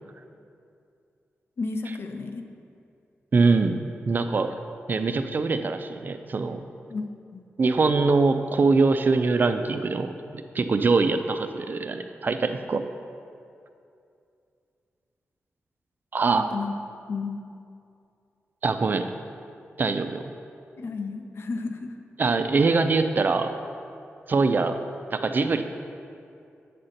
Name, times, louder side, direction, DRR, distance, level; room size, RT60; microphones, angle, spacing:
voice 1, 1.6-2.4 6.9-7.0 7.3-7.4 16.4-16.7 17.1-17.4 20.8-21.9, left 4 dB, 60° left, 6 dB, 0.6 m, -32 dB
voice 2, 3.3-4.5 4.9-6.6 7.6-12.8 16.1-16.5 18.6-19.1 19.8-20.3 22.2-23.5 24.3-24.8 25.1-25.6, right 4 dB, 45° right, 8 dB, 0.4 m, -23 dB
8.8 x 4.3 x 6.4 m, 2.5 s
wide cardioid pair, 130°, 5 cm